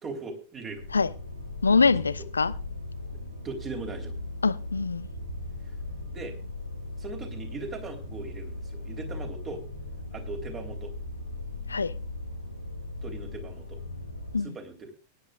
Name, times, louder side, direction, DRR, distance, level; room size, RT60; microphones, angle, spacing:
voice 1, 0.0-0.8 3.4-4.1 6.1-6.3 7.0-9.6 10.1-10.9 13.0-13.8 14.4-14.9, right 3 dB, 25° right, 3.4 m, -39 dB
sound 1, 0.7-14.4, left 2 dB, 90° right, 2.0 m, -38 dB
voice 2, 1.6-2.5 4.4-5.1 11.7-11.9 14.3-14.6, left 4 dB, 75° left, 0.5 m, -24 dB
23.0 x 10.5 x 2.4 m
figure-of-eight pair, 90°, 0 cm